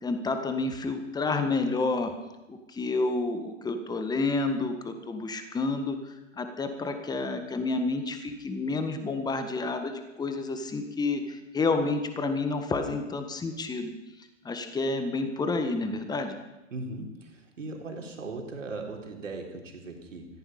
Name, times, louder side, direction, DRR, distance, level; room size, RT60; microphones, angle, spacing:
voice 1, 0.0-2.1 2.5-13.9 14.4-16.4, left 3 dB, 10° left, 7 dB, 1.6 m, -29 dB
voice 2, 16.7-20.3, right 3 dB, 80° right, 1 dB, 3.8 m, -38 dB
17.5 x 14.5 x 5.6 m, 0.98 s
figure-of-eight pair, 115°, 38 cm